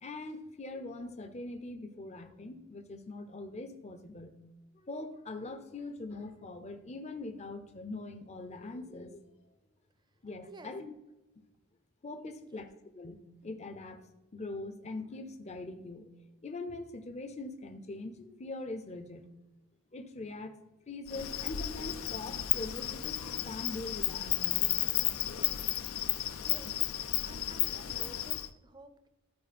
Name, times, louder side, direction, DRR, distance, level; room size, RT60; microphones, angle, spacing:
voice 1, 0.0-4.4 4.7-9.5 10.2-10.9 12.0-12.7 13.0-14.0 14.3-16.1 16.4-19.3 19.9-20.5 20.9-24.7, left 2 dB, 30° left, 6 dB, 0.6 m, -42 dB
voice 2, 10.4-10.8 12.3-12.7 26.4-26.7 27.2-29.1, right 2 dB, 20° right, 9 dB, 0.6 m, -53 dB
Insect, 21.1-28.5, left 13 dB, 75° left, 0.5 m, -33 dB
13.0 x 4.4 x 4.2 m, 1.0 s
head